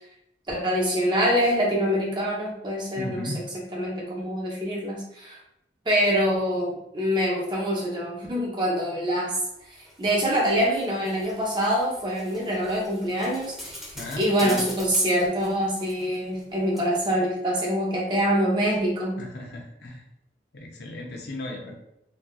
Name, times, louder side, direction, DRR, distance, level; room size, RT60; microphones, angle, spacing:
voice 1, 0.5-3.3 3.7-5.4 5.8-19.2, equal, 25° right, -3 dB, 0.7 m, -25 dB
voice 2, 2.9-3.4 13.9-14.7 19.2-20.1 20.5-21.8, left 1 dB, 70° left, 1 dB, 0.6 m, -36 dB
sound 1, 9.5-16.5 16.8-16.9, left 1 dB, ahead, 1.1 m, -43 dB
4.1 x 2.4 x 2.3 m, 0.81 s
head